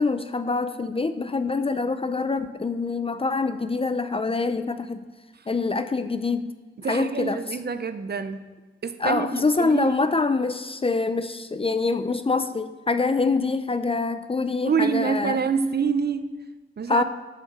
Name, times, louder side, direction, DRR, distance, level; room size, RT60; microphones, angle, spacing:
voice 1, 0.0-5.1 5.5-6.5 6.9-7.4 9.0-15.4 16.9-17.0, left 3 dB, 25° left, 11 dB, 0.5 m, -25 dB
voice 2, 6.8-8.4 8.8-9.9 14.7-16.2 16.8-17.0, right 6 dB, 50° right, 10 dB, 0.7 m, -26 dB
8.9 x 8.6 x 6.6 m, 1.3 s
wide cardioid pair, 160°, 21 cm